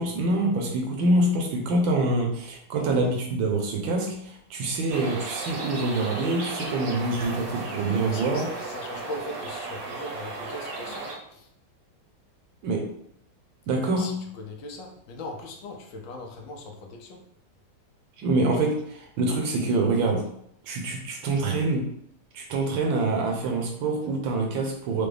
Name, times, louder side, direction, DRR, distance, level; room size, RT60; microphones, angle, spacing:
voice 1, 0.0-8.5 12.6-12.8 13.7-14.1 18.2-20.2 20.6-21.8 22.3-25.1, right 2 dB, 80° right, 2 dB, 1.5 m, -25 dB
sound 1, 4.9-11.2, right 3 dB, 60° right, 1.1 m, -35 dB
voice 2, 7.8-11.5 13.7-17.2, left 2 dB, 85° left, 2 dB, 1.4 m, -40 dB
5.0 x 2.2 x 3.3 m, 0.70 s
omnidirectional pair, 2.1 m